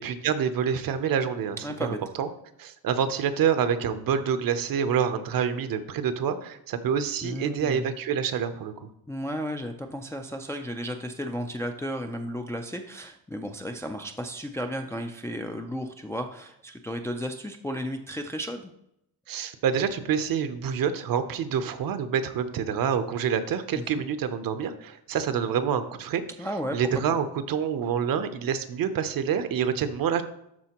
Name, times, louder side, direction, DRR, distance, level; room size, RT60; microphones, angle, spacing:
voice 1, 0.0-2.3 2.6-8.7 19.3-26.2 26.7-30.2, right 7 dB, 60° right, 10 dB, 0.7 m, -27 dB
voice 2, 1.6-2.0 7.2-7.9 9.1-18.7 23.7-24.0 26.4-26.8 27.1-27.2, equal, 10° left, 4 dB, 0.3 m, -34 dB
12.5 x 4.2 x 2.9 m, 0.77 s
cardioid pair, 145°, 39 cm